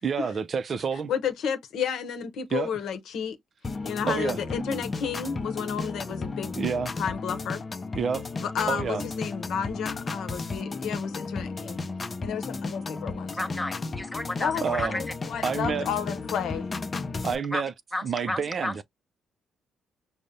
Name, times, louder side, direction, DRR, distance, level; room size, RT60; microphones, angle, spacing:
voice 1, 0.0-1.1 2.5-2.7 4.1-4.4 6.1-6.2 6.6-6.9 7.9-8.2 8.7-9.0 14.6-15.0 15.4-15.9 17.2-17.7 18.0-18.8, right 6 dB, 45° right, 0.4 m, -28 dB
voice 2, 1.1-3.4 3.8-6.6 7.0-7.6 8.3-11.8 12.2-13.7 14.4-16.7, left 7 dB, 75° left, 0.8 m, -32 dB
sound 1, 3.6-17.4, left 3 dB, 30° left, 0.5 m, -34 dB
voice 3, 13.4-15.0 17.5-17.6 17.9-18.7, left 1 dB, 10° left, 0.8 m, -32 dB
5.0 x 2.0 x 2.6 m
cardioid pair, 90°, 0 cm